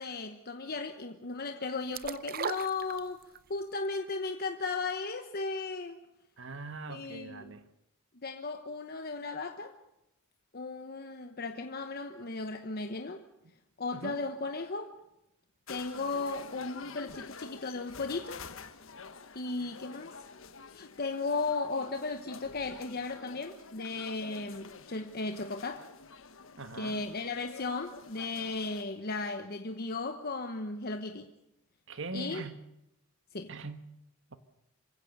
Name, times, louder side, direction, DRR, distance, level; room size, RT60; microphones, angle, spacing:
voice 1, 0.0-6.0 6.9-7.5 8.1-9.7 10.5-13.2 13.8-14.9 15.7-18.4 19.3-20.1 20.7-25.9 26.7-31.3 32.1-32.4 33.3-33.5, left 3 dB, 45° left, 1.1 m, -36 dB
sound 1, 1.9-3.5 3.8-3.9, right 6 dB, 45° right, 0.7 m, -37 dB
voice 2, 6.4-7.6 13.9-14.2 26.6-27.0 31.9-32.6 33.5-33.9 34.3-34.4, right 3 dB, 60° right, 1.5 m, -41 dB
sound 2, 15.7-28.8, left 5 dB, 65° left, 1.4 m, -48 dB
26.5 x 16.0 x 6.8 m
head